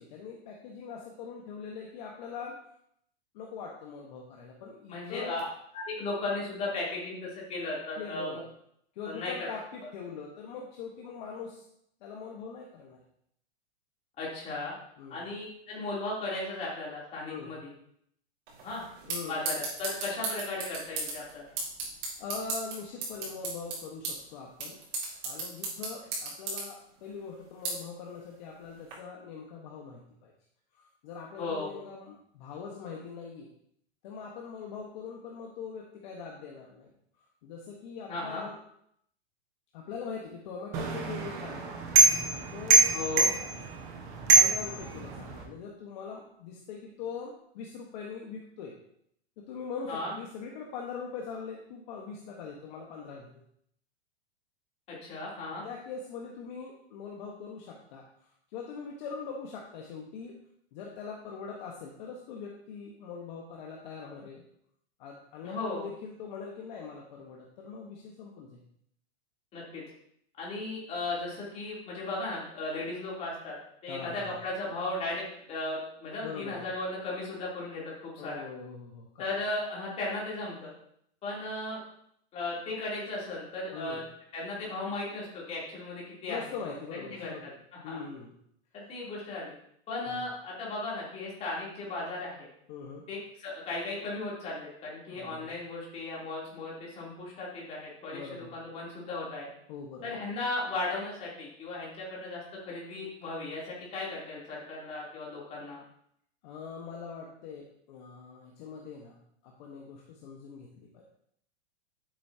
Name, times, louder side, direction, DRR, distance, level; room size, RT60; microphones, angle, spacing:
voice 1, 0.0-2.6 3.3-5.4 8.0-8.5 8.9-11.6 12.0-13.0 15.0-15.2 17.3-17.5 19.1-19.4 22.2-24.8 25.2-30.3 30.7-33.5 34.0-36.9 37.4-38.6 39.7-41.7 42.5-43.0 44.3-48.7 49.4-53.3 55.6-58.0 58.5-60.4 60.7-64.4 65.0-68.6 73.9-74.4 76.2-76.7 78.2-79.1 83.7-84.0 86.3-87.4 87.8-88.3 90.0-90.2 92.7-93.0 95.1-95.6 98.1-98.6 99.7-100.1 106.4-109.2 109.4-111.0, left 5 dB, 45° left, -1 dB, 1.4 m, -42 dB
voice 2, 4.9-5.4 5.7-8.4 9.0-9.5 14.2-14.7 15.1-17.7 18.6-18.8 19.3-21.5 31.4-31.7 38.1-38.5 42.9-43.3 49.9-50.1 54.9-55.6 65.4-65.9 69.5-69.8 70.4-73.6 73.8-75.2 75.5-78.4 79.2-80.7 81.2-81.8 82.3-84.0 84.3-86.4 87.1-88.0 88.7-89.5 89.9-92.5 93.1-99.5 100.0-105.8, left 2 dB, 20° left, -5 dB, 3.4 m, -36 dB
sound 1, 18.5-28.9, right 3 dB, 45° right, 4.3 m, -38 dB
sound 2, 40.7-45.4, right 3 dB, 10° right, 0.3 m, -25 dB
10.5 x 8.6 x 2.9 m, 0.70 s
supercardioid pair, 165°, 32 cm